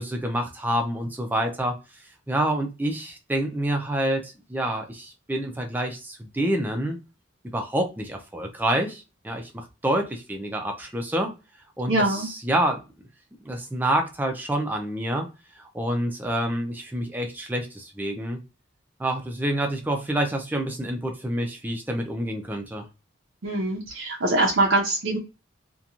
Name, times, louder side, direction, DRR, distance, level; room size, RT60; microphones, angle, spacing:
voice 1, 0.0-1.8 2.3-7.0 7.5-11.3 11.8-12.8 13.4-15.3 15.6-18.4 19.0-22.9, right 1 dB, 10° right, 3 dB, 0.4 m, -27 dB
voice 2, 11.9-12.3 23.4-25.2, right 2 dB, 75° right, -1 dB, 0.6 m, -23 dB
2.8 x 2.2 x 2.4 m, 0.29 s
head